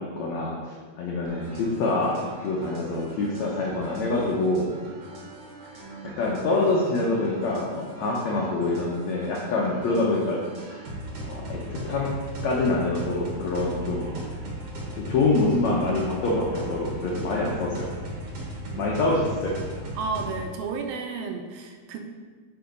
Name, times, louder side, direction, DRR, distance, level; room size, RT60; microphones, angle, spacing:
voice 1, 0.0-4.7 5.7-10.8 11.2-12.1 12.4-14.1 14.8-18.0 18.8-19.6, left 2 dB, 80° left, -3 dB, 1.5 m, -26 dB
sound 1, 1.3-20.5, right 1 dB, 55° right, 1.6 m, -38 dB
voice 2, 5.8-6.2 18.7-18.9 20.0-22.0, right 4 dB, 80° right, 4 dB, 2.3 m, -33 dB
7.0 x 5.0 x 5.1 m, 1.5 s
omnidirectional pair, 4.5 m